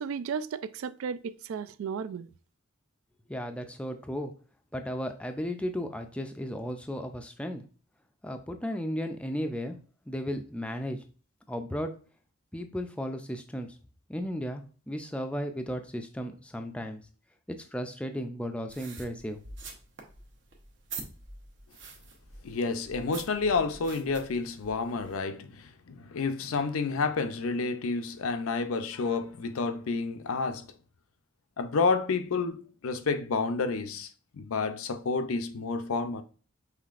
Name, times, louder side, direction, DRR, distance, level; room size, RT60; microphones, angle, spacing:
voice 1, 0.0-2.3, right 6 dB, 75° right, 0.3 m, -34 dB
voice 2, 3.3-4.3 4.7-7.6 8.2-9.8 10.1-11.0 11.5-11.9 12.5-13.7 14.1-17.0 17.5-19.4, equal, 5° left, 0.3 m, -35 dB
sound 1, 18.7-25.2, right 4 dB, 60° right, 0.8 m, -46 dB
voice 3, 22.4-30.7 31.6-34.1 34.3-36.2, left 4 dB, 90° left, 0.5 m, -30 dB
5.7 x 3.2 x 2.4 m
head